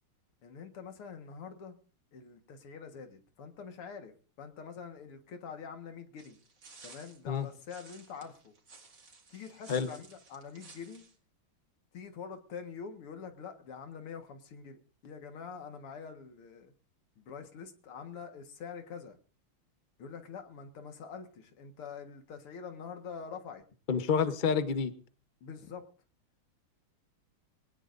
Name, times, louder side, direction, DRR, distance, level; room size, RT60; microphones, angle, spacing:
voice 1, 0.4-1.8 2.1-6.4 6.8-8.5 9.3-11.0 11.9-16.7 17.2-19.2 20.0-23.6 25.4-25.8, left 6 dB, 85° left, 6 dB, 2.5 m, -45 dB
sound 1, 6.2-11.1, right 4 dB, 55° right, 3.2 m, -55 dB
voice 2, 23.9-24.9, left 6 dB, 35° left, 10 dB, 0.8 m, -28 dB
23.5 x 18.0 x 2.6 m, 0.37 s
omnidirectional pair, 2.4 m